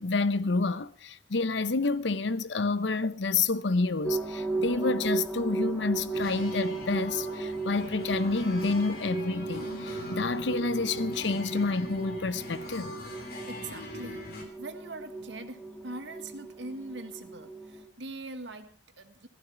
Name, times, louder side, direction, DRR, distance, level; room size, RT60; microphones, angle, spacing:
voice 1, 0.0-13.0, left 3 dB, 75° left, 0.8 m, -29 dB
sound 1, 4.0-17.8, right 3 dB, 5° left, 2.2 m, -36 dB
sound 2, 6.1-14.4, left 2 dB, 55° left, 3.1 m, -42 dB
voice 2, 13.5-19.3, right 2 dB, 75° right, 1.7 m, -42 dB
15.5 x 14.5 x 4.6 m
head